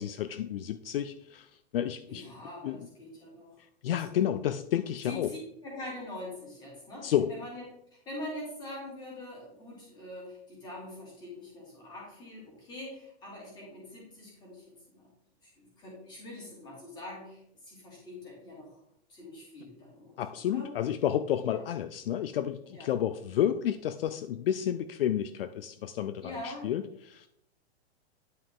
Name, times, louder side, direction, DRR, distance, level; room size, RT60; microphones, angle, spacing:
voice 1, 0.0-2.2 2.6-2.8 3.8-5.3 7.0-7.4 20.2-27.3, left 10 dB, 60° left, 10 dB, 0.5 m, -31 dB
voice 2, 2.1-4.2 5.0-7.6 7.9-14.6 14.9-15.1 15.4-18.8 19.1-20.7 21.5-21.6 22.7-23.2 26.2-26.7, left 1 dB, 15° left, -4 dB, 2.8 m, -44 dB
10.0 x 5.5 x 3.7 m, 0.73 s
supercardioid pair, 175°, 32 cm